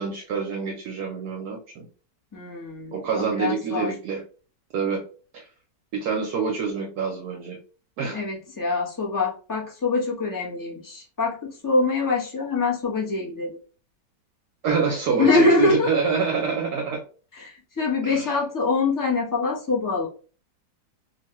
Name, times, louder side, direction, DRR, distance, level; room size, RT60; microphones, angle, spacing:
voice 1, 0.0-1.9 2.9-4.2 4.7-5.0 5.3-5.5 5.9-7.6 8.0-8.2 14.6-17.0 18.0-18.3, right 5 dB, 70° right, 0 dB, 1.0 m, -26 dB
voice 2, 2.3-3.9 8.1-13.6 15.2-15.9 17.3-20.1, left 3 dB, 20° left, -4 dB, 0.5 m, -24 dB
3.1 x 2.2 x 2.8 m, 0.37 s
omnidirectional pair, 1.9 m